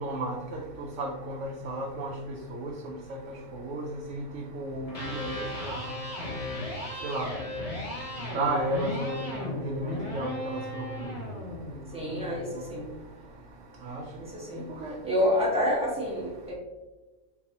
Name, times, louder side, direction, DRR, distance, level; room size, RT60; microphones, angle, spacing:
voice 1, 0.0-0.4 0.8-2.1 2.5-2.9 3.5-5.8 7.0-7.3 8.3-10.8 13.8-14.0 14.8-14.9, right 1 dB, 70° right, 0 dB, 0.9 m, -33 dB
Electric guitar, 4.8-12.9, left 1 dB, 30° left, 1.0 m, -36 dB
voice 2, 11.9-12.9 14.2-14.7 15.0-16.5, left 1 dB, 5° right, -5 dB, 1.3 m, -28 dB
4.8 x 3.8 x 2.9 m, 1.2 s
omnidirectional pair, 1.4 m